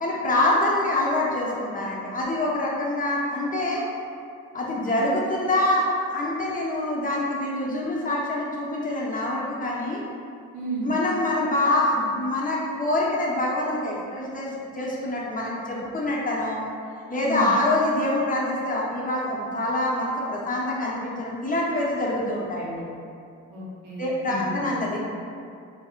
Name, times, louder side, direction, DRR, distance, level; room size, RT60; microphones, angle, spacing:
voice 1, 0.0-3.8 4.5-10.0 10.8-14.5 14.7-16.6 17.1-22.8 24.0-25.0, left 1 dB, 25° left, -4 dB, 0.6 m, -25 dB
voice 2, 10.5-10.9 17.2-17.5 23.5-24.6, right 2 dB, 80° right, -4 dB, 0.8 m, -32 dB
4.9 x 2.0 x 2.4 m, 2.4 s
cardioid pair, 90°, 30 cm